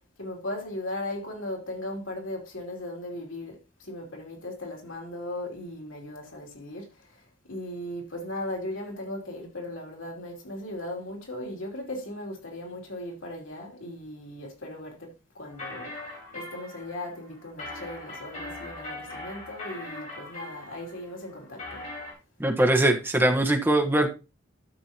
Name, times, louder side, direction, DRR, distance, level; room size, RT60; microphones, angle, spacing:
voice 1, 0.2-15.1 15.3-16.0 16.3-21.8, left 1 dB, 85° left, 3.0 m, -37 dB
sound 1, 15.5-22.1, left 2 dB, 40° left, 4.3 m, -40 dB
voice 2, 22.4-24.1, right 1 dB, 10° right, 1.2 m, -22 dB
13.0 x 6.9 x 2.9 m
head